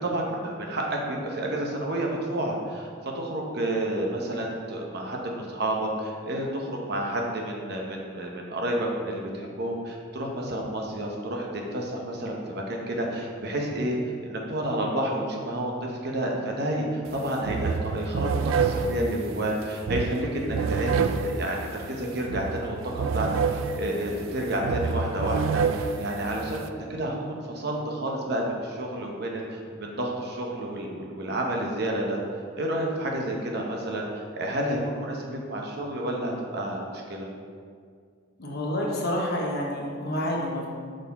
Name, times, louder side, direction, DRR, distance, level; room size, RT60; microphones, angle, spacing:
voice 1, 0.0-14.0 14.2-32.2 32.6-37.3, right 1 dB, 55° right, 0 dB, 0.9 m, -30 dB
sound 1, 17.1-17.2 17.4-26.7, right 5 dB, 80° right, 0.3 m, -28 dB
voice 2, 38.4-40.7, left 1 dB, 55° left, -2 dB, 1.0 m, -28 dB
6.2 x 4.3 x 4.1 m, 2.1 s
head